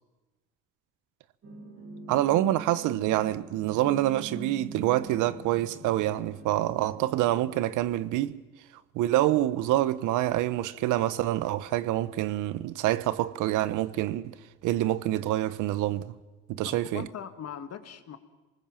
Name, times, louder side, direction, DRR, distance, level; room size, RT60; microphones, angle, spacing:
sound 1, 1.4-7.8, right 2 dB, 50° right, 5.7 m, -44 dB
voice 1, 2.1-8.4 8.9-14.3 14.6-16.1 16.5-17.1, right 14 dB, 75° right, 1.0 m, -26 dB
voice 2, 16.6-18.2, left 8 dB, 55° left, 2.1 m, -40 dB
27.0 x 19.5 x 7.3 m
supercardioid pair, 85°, 31 cm